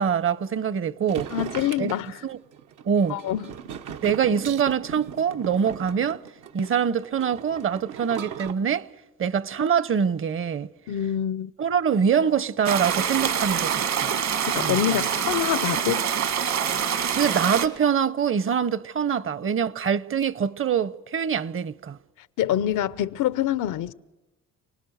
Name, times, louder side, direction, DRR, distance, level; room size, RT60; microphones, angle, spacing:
voice 1, 0.0-1.3 1.8-1.9 2.2-2.4 2.9-3.2 4.0-6.2 6.5-8.9 9.2-10.7 11.6-14.1 14.6-14.8 17.2-22.0, right 7 dB, 45° right, 0.8 m, -24 dB
sound 1, 1.1-8.5, right 8 dB, 80° right, 1.1 m, -38 dB
voice 2, 1.3-2.2 3.1-3.5 10.9-11.5 14.5-16.1 22.4-23.9, left 11 dB, 85° left, 0.8 m, -26 dB
sound 2, 12.7-17.7, right 8 dB, 65° right, 2.0 m, -25 dB
29.0 x 19.0 x 6.5 m
cardioid pair, 90°, 30 cm